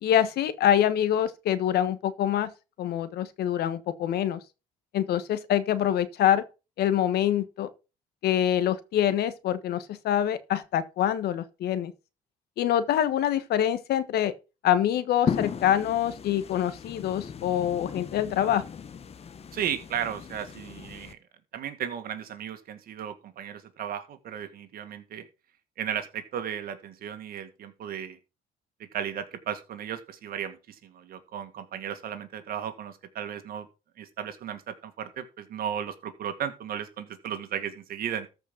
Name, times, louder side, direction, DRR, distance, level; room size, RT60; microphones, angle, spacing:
voice 1, 0.0-2.5 2.8-4.4 4.9-6.4 6.8-7.7 8.2-11.9 12.6-14.3 14.6-18.6, left 10 dB, 70° left, 1.4 m, -25 dB
sound 1, 15.3-21.1, left 7 dB, 35° left, 1.2 m, -36 dB
voice 2, 19.5-21.2 21.5-25.3 25.8-28.2 28.9-33.7 34.0-38.3, right 9 dB, 60° right, 2.0 m, -35 dB
13.5 x 5.4 x 6.0 m
cardioid pair, 110°, 17 cm